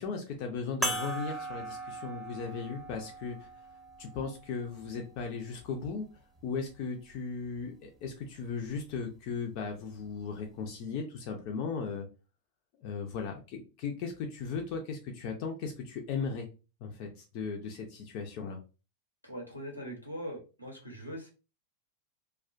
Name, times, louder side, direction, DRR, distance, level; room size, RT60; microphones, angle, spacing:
voice 1, 0.0-3.5 4.0-6.0 6.4-12.1 12.8-16.5 16.8-17.1 17.3-18.6, left 5 dB, 45° left, 2 dB, 0.5 m, -37 dB
sound 1, 0.8-5.6 6.4-6.5 8.6-8.8, right 1 dB, 5° right, 0.8 m, -39 dB
voice 2, 19.2-21.3, equal, 90° left, 0 dB, 0.7 m, -41 dB
2.3 x 2.2 x 2.4 m, 0.32 s
figure-of-eight pair, 90°, 0 cm